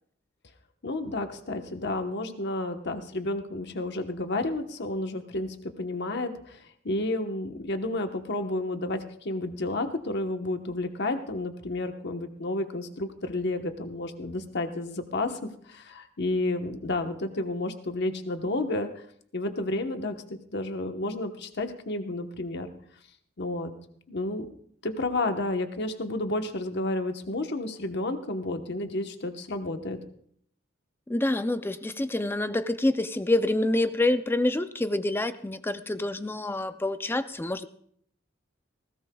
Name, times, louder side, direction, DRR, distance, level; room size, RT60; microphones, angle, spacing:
voice 1, 0.8-15.4 15.7-18.9 19.3-22.7 23.4-23.7 24.1-24.5 24.8-30.0, left 2 dB, 55° left, 6 dB, 1.1 m, -31 dB
voice 2, 31.1-37.7, left 2 dB, 10° left, 11 dB, 0.4 m, -27 dB
19.5 x 17.0 x 2.3 m, 0.65 s
head